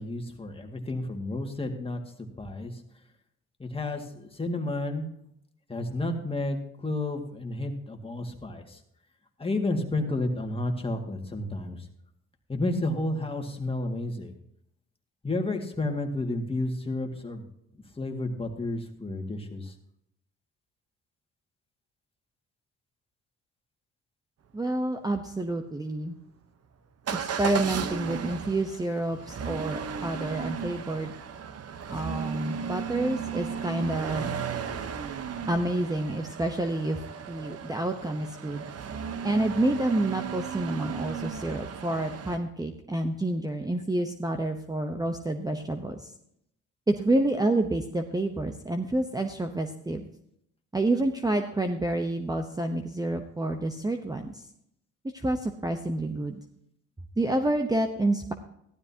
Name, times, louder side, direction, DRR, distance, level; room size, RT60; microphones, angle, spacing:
voice 1, 0.0-2.0 2.4-2.8 3.6-5.0 5.7-8.8 9.4-11.9 12.5-14.3 15.2-17.4 18.0-19.7, left 2 dB, 20° left, 3 dB, 2.1 m, -31 dB
voice 2, 24.5-26.2 27.1-31.1 31.9-34.4 35.5-37.0 37.3-38.6 39.2-46.1 46.9-50.1 50.7-54.4 55.1-56.4 57.2-58.3, right 2 dB, 10° right, 6 dB, 0.9 m, -28 dB
Motor vehicle (road) / Engine starting / Accelerating revving vroom, 27.1-42.4, right 7 dB, 55° right, 1.1 m, -35 dB
15.0 x 12.0 x 2.9 m, 0.73 s
cardioid pair, 90°, 30 cm